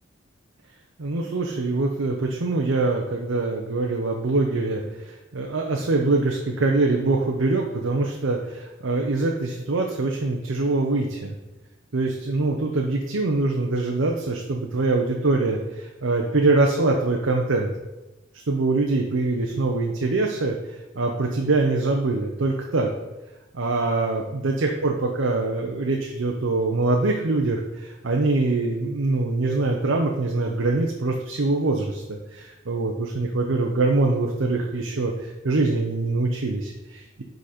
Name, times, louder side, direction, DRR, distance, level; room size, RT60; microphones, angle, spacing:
voice 1, 1.0-11.3 11.9-17.7 18.5-22.9 23.5-32.0 32.3-35.1 35.4-37.2, right 3 dB, 85° right, 1 dB, 0.7 m, -24 dB
9.8 x 4.0 x 4.3 m, 1.1 s
head